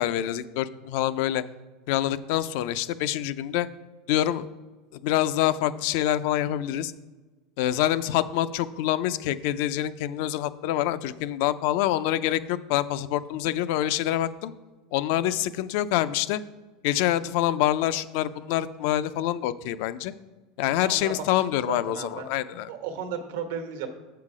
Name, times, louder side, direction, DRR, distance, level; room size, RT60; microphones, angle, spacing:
voice 1, 0.0-1.4 1.9-3.7 4.1-4.5 4.9-6.9 7.6-14.5 14.9-16.4 16.8-20.1 20.6-22.7, left 12 dB, 65° left, 14 dB, 0.4 m, -26 dB
voice 2, 20.8-21.1 21.5-22.3 22.7-23.9, right 7 dB, 80° right, 6 dB, 1.2 m, -35 dB
7.3 x 5.7 x 4.9 m, 1.2 s
supercardioid pair, 140°, 0 cm